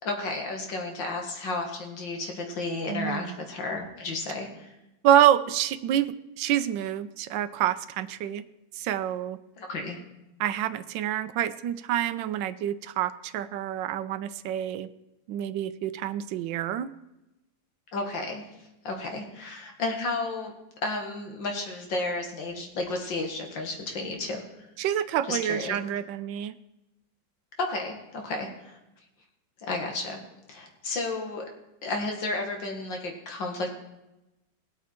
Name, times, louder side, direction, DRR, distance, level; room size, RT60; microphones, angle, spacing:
voice 1, 0.0-4.7 9.6-10.0 17.9-18.5 18.8-24.4 25.3-25.8 27.6-28.8 29.7-30.2 30.5-31.5 31.8-33.7, left 2 dB, 75° left, 3 dB, 2.4 m, -32 dB
voice 2, 2.9-3.4 5.0-8.4 8.8-9.4 10.4-14.9 15.3-16.9 24.8-26.5, right 11 dB, 75° right, 11 dB, 1.3 m, -27 dB
19.0 x 8.4 x 4.4 m, 0.94 s
omnidirectional pair, 2.1 m